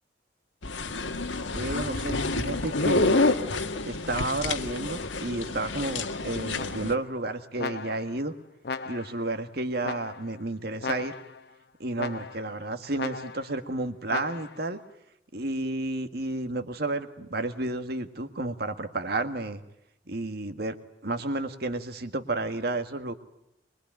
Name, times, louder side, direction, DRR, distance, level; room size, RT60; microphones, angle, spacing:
sound 1, 0.6-7.0, left 2 dB, 90° left, 1.7 m, -28 dB
voice 1, 1.5-3.4 3.8-8.3 8.9-11.1 11.8-14.8 15.3-19.6 20.1-20.8 21.0-23.1, right 2 dB, 55° right, 8 dB, 1.8 m, -31 dB
sound 2, 6.6-7.1 7.6-8.2 8.6-9.3 9.8-10.4 10.8-11.5 12.0-12.6 13.0-13.6 14.1-14.7, left 4 dB, 60° left, 0.9 m, -37 dB
23.5 x 22.5 x 9.2 m, 0.84 s
head